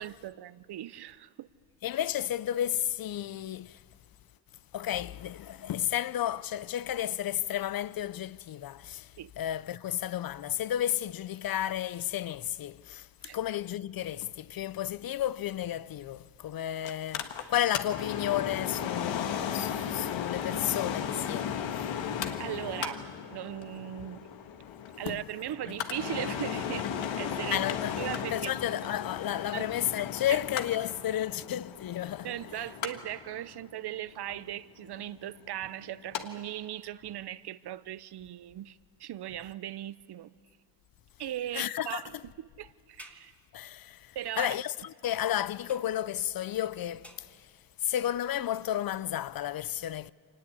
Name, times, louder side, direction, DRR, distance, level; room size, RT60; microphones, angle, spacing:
voice 1, 0.0-1.5 9.2-9.3 13.2-13.4 22.4-23.0 23.3-24.2 25.0-27.7 28.0-28.5 28.9-29.0 29.5-29.7 30.3-30.4 32.2-40.3 41.2-42.1 42.4-43.3 44.1-44.6, right 12 dB, 60° right, 0.7 m, -38 dB
voice 2, 1.8-3.8 4.7-21.9 24.7-24.8 25.1-25.2 27.5-32.3 41.5-42.0 43.5-47.5 47.8-50.1, left 12 dB, 50° left, 0.6 m, -32 dB
Mechanical fan, 16.8-36.2 36.6-36.7, left 8 dB, 80° left, 1.6 m, -36 dB
sound 1, 43.0-43.3 44.4-44.7 45.7-46.1 47.0-47.5 48.9-49.0, equal, 5° left, 1.9 m, -51 dB
25.0 x 19.0 x 8.5 m
cardioid pair, 95°, 45 cm